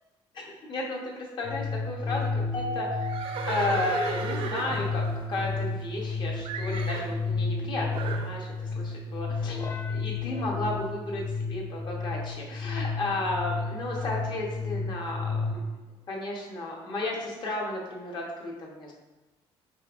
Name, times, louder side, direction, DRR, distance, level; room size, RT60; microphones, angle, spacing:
voice 1, 0.3-3.1 3.5-8.5 8.7-9.6 9.9-11.2 11.5-15.6 16.1-18.9, left 2 dB, 45° left, -1 dB, 1.0 m, -33 dB
sound 1, 1.4-15.6, left 4 dB, 30° left, 0.3 m, -32 dB
Mallet percussion, 2.5-5.0, right 1 dB, 90° left, 0.7 m, -37 dB
Livestock farm animals working animals, 3.0-6.1 6.4-7.1 7.9-8.3, right 5 dB, 60° right, 0.5 m, -35 dB
5.4 x 3.4 x 2.5 m, 1.1 s
cardioid pair, 135°, 11 cm